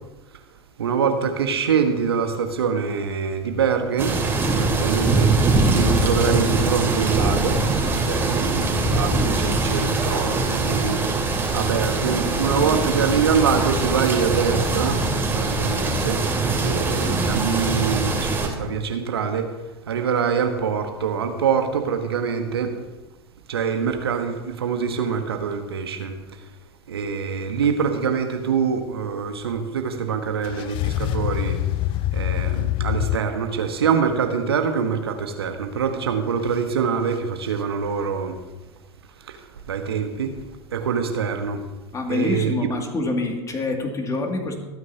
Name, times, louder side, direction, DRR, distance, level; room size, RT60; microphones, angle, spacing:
voice 1, 0.8-4.2 4.6-5.3 5.7-7.6 8.0-15.0 15.3-16.2 16.6-19.5 19.9-22.7 23.5-26.1 26.9-31.6 32.1-38.4 39.3-39.4 39.7-40.3 40.7-41.6 42.1-42.6, right 6 dB, 75° right, 6 dB, 1.3 m, -24 dB
sound 1, 4.0-18.5, right 3 dB, 15° right, 2.7 m, -22 dB
sound 2, 30.4-33.2, left 15 dB, 40° left, 0.4 m, -24 dB
voice 2, 41.9-44.5, left 2 dB, 25° left, 3 dB, 2.4 m, -26 dB
25.0 x 9.5 x 2.9 m, 1.1 s
figure-of-eight pair, 80°, 13 cm